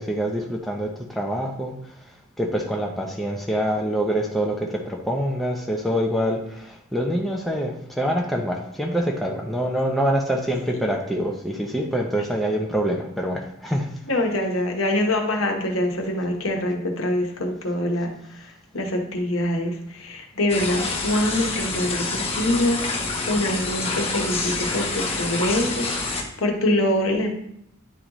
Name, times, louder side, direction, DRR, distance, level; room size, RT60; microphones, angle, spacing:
voice 1, 0.0-1.8 2.0-2.1 2.4-13.9, equal, ahead, -1 dB, 0.5 m, -25 dB
voice 2, 14.1-18.4 18.7-25.9 26.4-27.3, left 1 dB, 70° left, 2 dB, 1.1 m, -24 dB
sound 1, 20.5-26.2, left 3 dB, 25° left, 0.8 m, -27 dB
9.9 x 3.8 x 3.0 m, 0.73 s
head